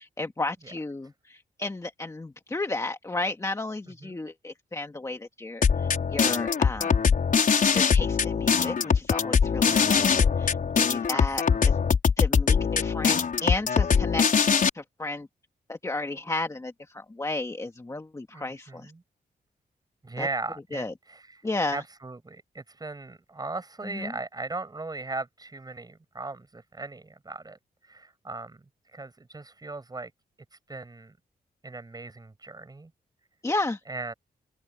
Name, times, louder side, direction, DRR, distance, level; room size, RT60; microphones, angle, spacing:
voice 1, 0.0-7.1 7.7-11.8 12.2-14.2 14.7-15.3 15.7-18.9 20.2-20.3 20.7-20.9 21.4-21.8 23.8-24.1 33.4-33.8, left 2 dB, 20° left, 1.9 m, -33 dB
sound 1, 5.6-14.7, left 6 dB, 55° left, 5.4 m, -22 dB
voice 2, 11.1-11.6 18.3-19.0 20.0-21.4 21.7-27.6 27.8-28.6 28.9-30.1 30.5-31.1 31.6-32.9 33.9-34.1, right 3 dB, 25° right, 6.9 m, -38 dB
open air
wide cardioid pair, 115°, 17 cm